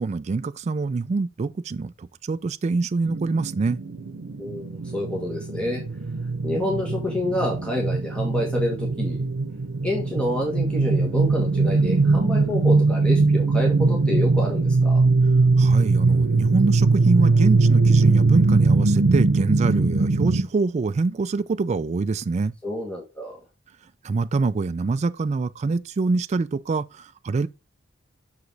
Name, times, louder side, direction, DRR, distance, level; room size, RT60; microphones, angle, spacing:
voice 1, 0.0-3.8 15.6-22.5 24.0-27.5, right 3 dB, 35° right, 0.3 m, -25 dB
sound 1, 3.0-20.4, right 3 dB, 85° right, 0.7 m, -21 dB
voice 2, 4.4-5.8 6.4-9.3 9.8-15.0 22.6-23.4, left 1 dB, 5° left, 1.6 m, -28 dB
6.2 x 4.9 x 3.9 m
head